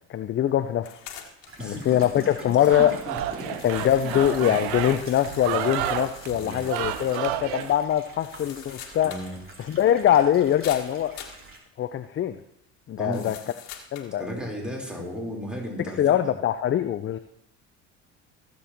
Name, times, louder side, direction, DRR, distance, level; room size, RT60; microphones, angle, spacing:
voice 1, 0.1-1.0 1.6-3.0 3.6-9.1 9.6-11.2 11.8-12.4 12.9-13.4 13.9-14.2 15.8-17.2, left 11 dB, 35° left, 10 dB, 0.5 m, -23 dB
sound 1, 0.8-1.7 2.0-2.1 2.6-7.3 7.6-7.7 8.0-9.3 9.6-9.7 10.6-11.4 13.1-14.1, left 9 dB, 65° left, 1.5 m, -44 dB
sound 2, 1.5-11.6, right 3 dB, 35° right, 2.9 m, -48 dB
voice 2, 1.6-2.5 2.8-3.7 4.0-4.5 5.4-5.6 6.3-6.6 9.0-9.4 13.0-13.3 14.2-16.2, equal, ahead, -2 dB, 3.5 m, -35 dB
sound 3, 2.7-7.7, right 11 dB, 70° right, 0.8 m, -31 dB
16.0 x 7.7 x 2.9 m, 0.75 s
hypercardioid pair, 65°, 37 cm